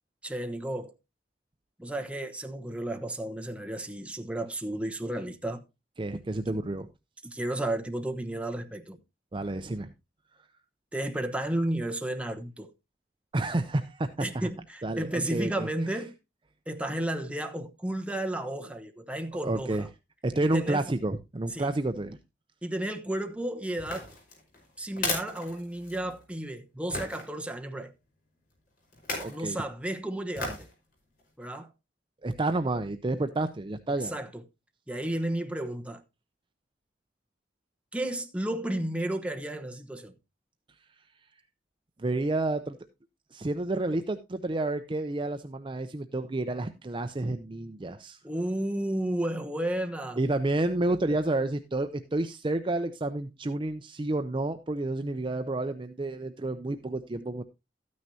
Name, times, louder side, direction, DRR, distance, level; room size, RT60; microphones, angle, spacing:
voice 1, 0.2-0.9 1.8-5.6 6.4-6.6 7.2-9.0 10.9-12.7 14.2-16.1 16.7-19.9 20.4-20.8 21.5-21.7 22.6-24.1 24.8-27.9 29.3-30.7 31.4-31.7 34.0-34.4 34.9-36.0 37.9-40.1 48.2-50.2, right 1 dB, 5° right, 1.1 m, -33 dB
voice 2, 6.0-6.9 9.3-9.9 13.3-14.5 14.8-15.7 19.4-19.9 20.2-22.2 29.2-29.6 32.2-34.1 42.0-42.8 43.3-48.2 50.2-57.4, right 2 dB, 30° right, 0.6 m, -30 dB
sound 1, 23.8-26.2 26.9-27.2 28.9-29.4 30.3-30.7 31.2-31.3, left 2 dB, 55° left, 4.9 m, -35 dB
13.5 x 9.5 x 2.8 m
head